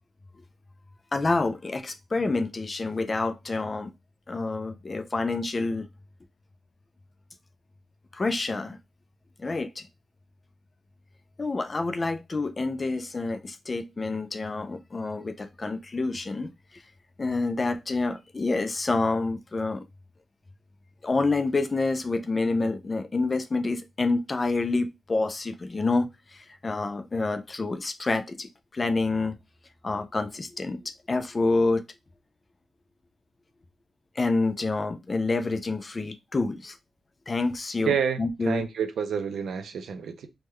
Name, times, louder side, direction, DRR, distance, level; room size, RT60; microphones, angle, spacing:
voice 1, 1.1-3.9 4.3-5.9 8.1-8.8 9.4-9.9 11.4-16.8 17.2-19.8 21.0-29.4 29.8-30.8 31.1-31.8 34.2-36.8 37.3-38.6, left 3 dB, 25° left, 0.4 m, -28 dB
voice 2, 37.8-40.3, right 7 dB, 75° right, 0.5 m, -29 dB
3.6 x 2.2 x 3.0 m
wide cardioid pair, 155°, 0 cm